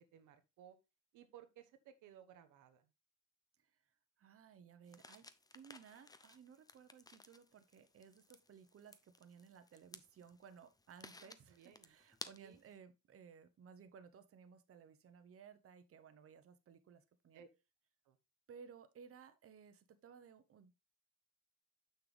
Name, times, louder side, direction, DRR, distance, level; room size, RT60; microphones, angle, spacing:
voice 1, 0.1-0.8 1.1-2.9 11.2-11.9 12.4-12.6 17.3-17.5 18.1-18.2, right 9 dB, 90° right, 1.0 m, -60 dB
voice 2, 4.2-5.3 5.5-17.4 18.5-20.7, right 6 dB, 50° right, 0.9 m, -59 dB
sound 1, 4.9-12.7, left 2 dB, 10° left, 0.6 m, -57 dB
6.8 x 6.1 x 3.3 m
cardioid pair, 90°, 30 cm